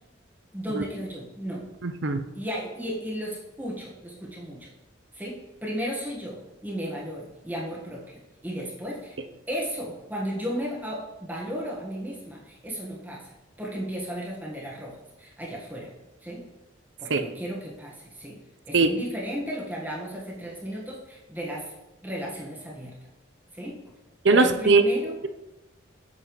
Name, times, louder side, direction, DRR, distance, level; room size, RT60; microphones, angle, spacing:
voice 1, 0.5-1.6 2.3-4.7 5.1-9.2 9.5-15.9 16.2-16.4 17.0-18.4 18.7-21.7 22.0-22.9 23.5-23.8 24.3-25.2, equal, 10° right, -4 dB, 1.4 m, -34 dB
voice 2, 1.8-2.2 17.1-17.2 18.7-18.9 24.2-24.8, right 3 dB, 70° right, 8 dB, 0.6 m, -20 dB
8.2 x 7.2 x 3.1 m, 0.99 s
head